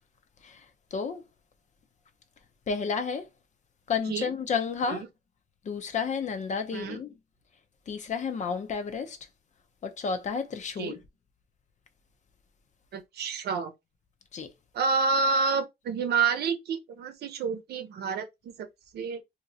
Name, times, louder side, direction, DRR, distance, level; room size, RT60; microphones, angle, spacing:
voice 1, 0.9-1.2 2.7-3.3 3.9-5.0 5.7-7.1 7.9-9.2 9.8-11.0 14.3-14.5, left 5 dB, 45° left, 0.7 m, -31 dB
voice 2, 12.9-13.7 14.7-18.7 18.9-19.2, right 4 dB, 75° right, 0.7 m, -29 dB
2.9 x 2.7 x 2.7 m
cardioid pair, 120°, 17 cm